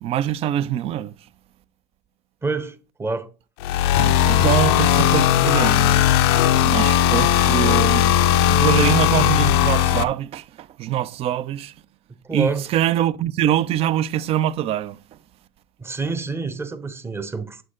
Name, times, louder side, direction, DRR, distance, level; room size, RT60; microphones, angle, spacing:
voice 1, 0.0-1.1 4.0-6.2 6.6-11.7 12.3-15.0, right 11 dB, 45° right, 0.5 m, -24 dB
voice 2, 2.4-3.3 12.1-12.7 15.8-17.6, right 3 dB, 20° right, 0.9 m, -28 dB
sound 1, 3.6-10.0, left 10 dB, 70° left, 0.5 m, -17 dB
7.7 x 6.2 x 2.5 m
hypercardioid pair, 65°, 14 cm